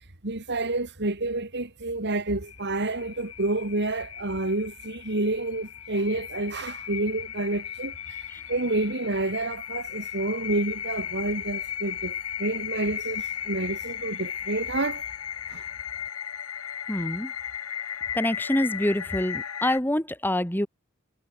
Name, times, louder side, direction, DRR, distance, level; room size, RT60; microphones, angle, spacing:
voice 1, 0.2-8.2 8.5-15.0 15.5-15.6, right 2 dB, 55° right, 2.8 m, -29 dB
sound 1, 2.4-19.8, left 9 dB, 90° left, 2.4 m, -36 dB
voice 2, 16.9-17.3 18.1-20.7, left 1 dB, 10° left, 4.1 m, -26 dB
head